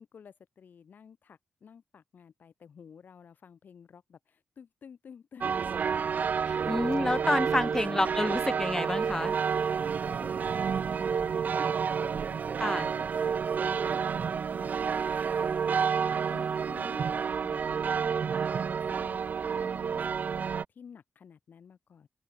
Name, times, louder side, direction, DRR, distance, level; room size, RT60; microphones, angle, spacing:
voice 1, 0.0-5.6 6.2-6.9 7.2-8.1 10.0-22.1, left 7 dB, 70° left, 6.3 m, -53 dB
sound 1, 5.4-20.6, right 6 dB, 60° right, 0.3 m, -30 dB
voice 2, 6.5-9.4 12.6-12.9, left 1 dB, 15° left, 0.8 m, -29 dB
open air
cardioid pair, 55°, 3 cm